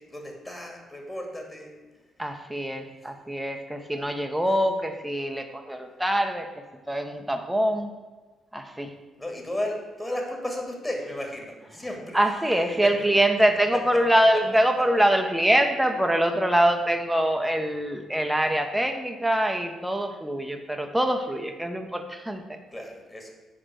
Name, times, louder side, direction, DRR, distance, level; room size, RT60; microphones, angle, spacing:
voice 1, 0.0-1.7 3.0-3.1 9.2-12.3 12.7-13.1 13.9-14.0 22.7-23.3, left 1 dB, 15° left, 2 dB, 2.3 m, -34 dB
voice 2, 2.2-6.5 6.9-7.9 8.5-8.9 12.1-22.6, right 1 dB, 5° right, 5 dB, 1.1 m, -24 dB
7.5 x 6.1 x 6.4 m, 1.3 s
figure-of-eight pair, 40°, 0 cm